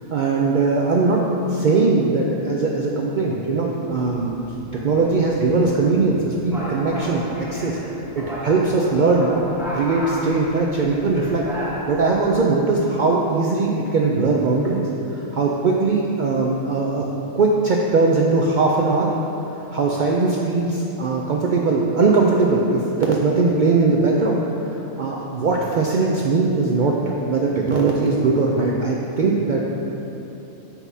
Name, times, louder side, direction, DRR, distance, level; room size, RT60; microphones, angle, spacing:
voice 1, 0.1-1.2 1.5-4.4 4.7-7.8 8.2-9.3 9.7-11.4 11.9-17.0 17.4-19.1 19.7-24.4 25.0-27.0 27.3-29.6, right 3 dB, 75° right, -2 dB, 0.4 m, -20 dB
sound 1, 3.9-12.4, equal, ahead, 0.9 m, -34 dB
8.0 x 5.6 x 2.7 m, 3.0 s
omnidirectional pair, 1.4 m